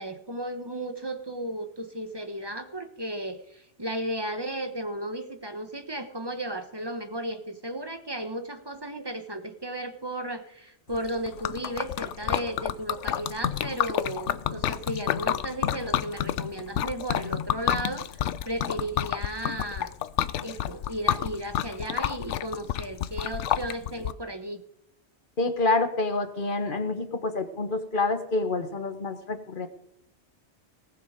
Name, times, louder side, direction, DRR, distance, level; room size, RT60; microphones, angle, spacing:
voice 1, 0.0-19.9 20.4-24.6, right 1 dB, 20° right, 7 dB, 1.2 m, -34 dB
Liquid, 10.9-24.1, left 11 dB, 85° left, 0.9 m, -29 dB
voice 2, 25.4-29.7, left 3 dB, 45° left, 8 dB, 1.4 m, -27 dB
18.5 x 7.3 x 5.1 m, 0.77 s
omnidirectional pair, 1.2 m